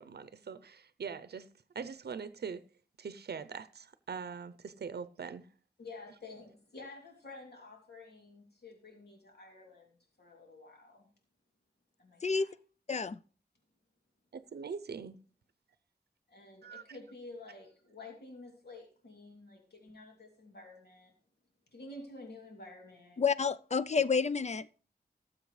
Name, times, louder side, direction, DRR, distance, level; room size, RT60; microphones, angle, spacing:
voice 1, 0.0-1.5 1.7-2.6 3.0-5.5 14.3-15.2 16.6-17.0, right 6 dB, 85° right, 0.6 m, -42 dB
voice 2, 5.8-11.1 12.0-12.5 16.3-21.1 21.7-23.2, left 2 dB, 90° left, 2.8 m, -50 dB
voice 3, 12.9-13.2 23.2-24.8, left 5 dB, 45° left, 0.4 m, -30 dB
18.0 x 7.3 x 3.2 m
wide cardioid pair, 75°, 16 cm